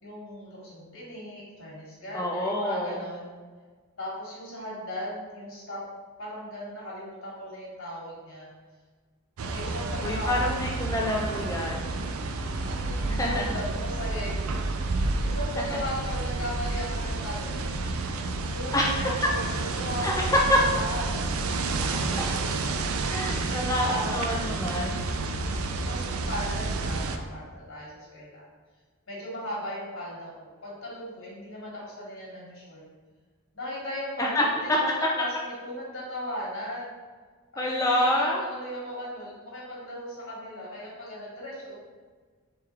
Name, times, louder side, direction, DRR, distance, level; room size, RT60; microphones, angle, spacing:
voice 1, 0.0-3.3 4.0-5.8 6.2-8.5 9.5-10.7 12.6-14.7 15.2-17.7 18.4-21.1 21.5-22.3 23.3-24.3 25.4-28.5 29.1-32.8 33.5-34.3 34.6-36.9 37.5-41.7, equal, 65° left, -6 dB, 1.5 m, -37 dB
voice 2, 2.1-3.0 10.0-12.0 13.1-13.5 15.6-15.7 18.7-19.3 20.0-20.6 21.8-22.3 23.1-25.0 34.2-34.8 37.6-38.4, left 1 dB, 15° left, -2 dB, 0.3 m, -27 dB
sound 1, 9.4-27.2, right 3 dB, 75° right, 0.4 m, -30 dB
3.6 x 3.3 x 4.4 m, 1.5 s
head